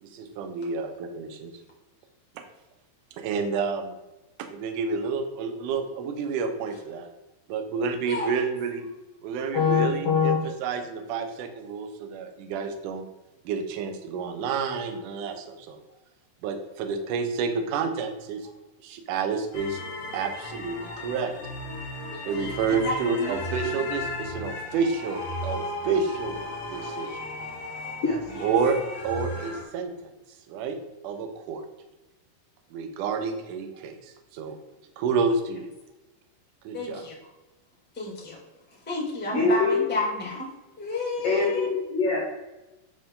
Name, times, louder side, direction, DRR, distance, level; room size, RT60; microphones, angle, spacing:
voice 1, 0.0-1.5 2.4-2.5 3.2-3.9 4.4-7.1 7.5-8.8 9.2-13.1 13.5-15.8 16.4-18.5 18.8-19.8 20.1-21.3 22.3-26.4 26.7-27.2 28.4-28.8 29.0-29.9 30.5-30.8 31.0-31.6 32.7-34.6 35.0-35.7 36.6-37.0, right 5 dB, 75° right, 6 dB, 1.9 m, -29 dB
voice 2, 9.5-10.4 28.0-28.2 39.3-39.8 41.2-42.3, left 5 dB, 85° left, -2 dB, 1.3 m, -23 dB
sound 1, 19.5-29.6, left 1 dB, 55° left, 3.0 m, -35 dB
voice 3, 22.1-23.4 23.7-23.8 28.4-28.5 36.7-37.1 37.9-38.4 38.9-40.5 40.8-41.7, left 2 dB, 15° left, -3 dB, 0.4 m, -31 dB
9.0 x 5.2 x 3.8 m, 1.0 s
omnidirectional pair, 4.9 m